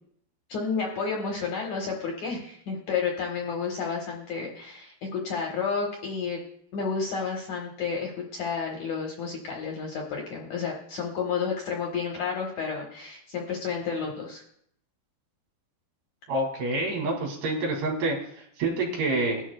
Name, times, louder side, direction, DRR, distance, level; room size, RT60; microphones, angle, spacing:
voice 1, 0.5-6.4 6.7-14.4, left 5 dB, 65° left, 0 dB, 2.1 m, -31 dB
voice 2, 16.3-19.4, right 2 dB, 70° right, 0 dB, 4.5 m, -27 dB
20.0 x 11.0 x 2.2 m, 0.68 s
omnidirectional pair, 4.8 m